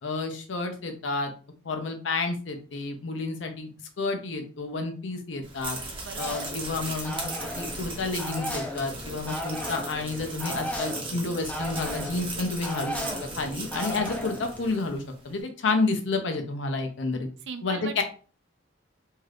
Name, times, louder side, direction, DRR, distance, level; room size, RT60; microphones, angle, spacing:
voice 1, 0.0-1.3 1.6-3.7 4.0-5.8 6.2-7.2 7.6-13.0 13.4-17.3 17.6-18.0, left 3 dB, 75° left, 5 dB, 0.6 m, -30 dB
sound 1, 5.4-15.0, right 3 dB, 25° right, 0.9 m, -38 dB
voice 2, 6.0-6.3 13.0-13.7 17.4-18.0, right 6 dB, 65° right, 8 dB, 0.4 m, -40 dB
sound 2, 6.2-14.8, left 1 dB, 10° left, 0.4 m, -36 dB
2.7 x 2.4 x 3.3 m, 0.38 s
head